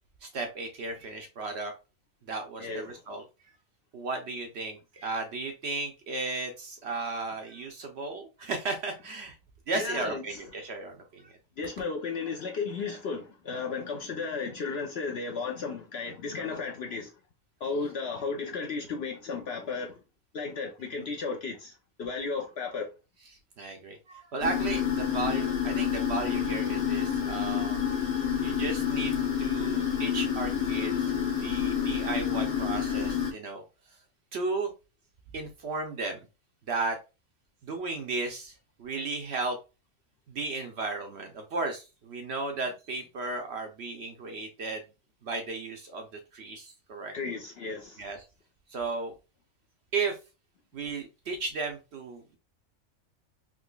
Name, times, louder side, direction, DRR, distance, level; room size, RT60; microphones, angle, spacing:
voice 1, 0.2-1.7 2.3-3.2 3.9-9.3 9.7-11.3 16.5-16.6 23.6-27.8 28.4-31.1 31.4-33.6 34.3-34.7 35.3-36.2 36.7-37.0 37.6-39.6 40.3-44.8 45.2-46.1 46.3-47.1 48.0-48.2 48.7-49.1 49.9-50.2 50.7-52.4, right 3 dB, 60° right, 0.7 m, -34 dB
voice 2, 2.6-3.0 9.7-10.4 11.6-17.1 17.6-20.0 20.3-22.9 47.1-48.0, left 4 dB, 60° left, 0.7 m, -34 dB
sound 1, 24.4-33.3, left 8 dB, 85° left, 1.5 m, -28 dB
3.8 x 2.9 x 2.2 m
omnidirectional pair, 1.5 m